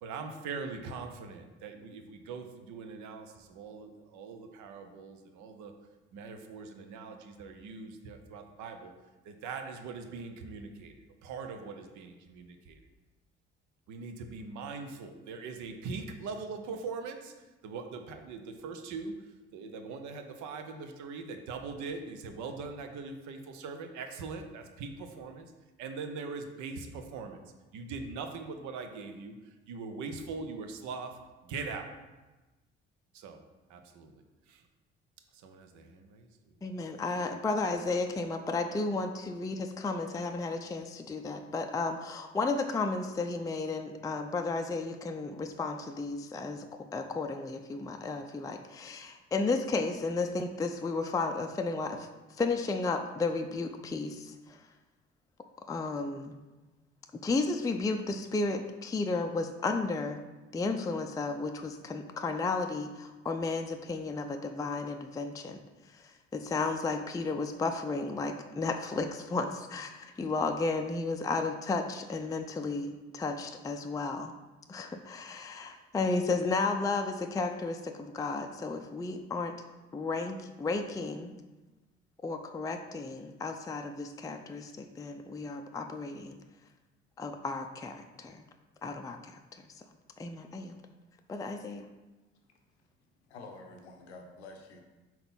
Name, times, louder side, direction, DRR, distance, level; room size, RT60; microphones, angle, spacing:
voice 1, 0.0-5.7 6.1-8.9 9.2-10.9 11.2-12.8 13.9-25.5 25.8-27.4 27.7-31.9 33.1-33.4 33.7-34.7 35.3-36.7, right 4 dB, 65° right, 6 dB, 0.8 m, -42 dB
voice 2, 36.6-52.1 52.4-54.6 55.7-56.3 57.2-60.2 60.5-65.6 65.9-74.3 74.7-79.6 79.9-81.3 82.2-86.4 87.2-88.4 88.8-89.8 90.2-90.8 91.3-91.9, left 3 dB, 10° left, 4 dB, 0.4 m, -33 dB
voice 3, 93.3-94.8, left 3 dB, 90° left, 3 dB, 0.7 m, -48 dB
4.4 x 3.9 x 5.4 m, 1.2 s
hypercardioid pair, 50°, 32 cm